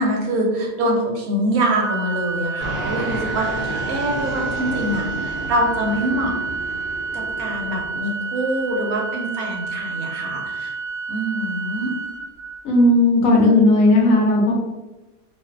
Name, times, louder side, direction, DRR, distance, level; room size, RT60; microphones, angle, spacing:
voice 1, 0.0-6.3 7.1-10.7 11.1-11.9, right 1 dB, 70° right, 0 dB, 1.0 m, -24 dB
Organ, 1.8-12.8, right 4 dB, 30° left, 0.7 m, -29 dB
Fixed-wing aircraft airplane, 2.6-8.0, right 1 dB, 15° right, 0.9 m, -31 dB
voice 2, 12.6-14.5, left 2 dB, 65° left, -1 dB, 0.9 m, -15 dB
2.5 x 2.4 x 2.3 m, 1.1 s
omnidirectional pair, 1.7 m